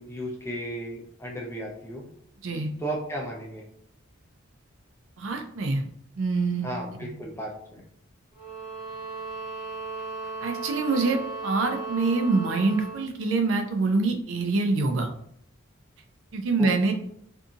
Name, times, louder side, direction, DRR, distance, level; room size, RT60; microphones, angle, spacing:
voice 1, 0.0-2.0 2.8-3.7 6.6-7.8 16.6-16.7, right 1 dB, 10° left, -1 dB, 0.5 m, -34 dB
voice 2, 5.2-5.8 6.2-6.7 10.4-15.1 16.3-16.9, right 3 dB, 65° right, 5 dB, 0.4 m, -25 dB
sound 1, 8.3-13.1, right 3 dB, 5° right, 0.9 m, -36 dB
2.7 x 2.6 x 2.4 m, 0.67 s
head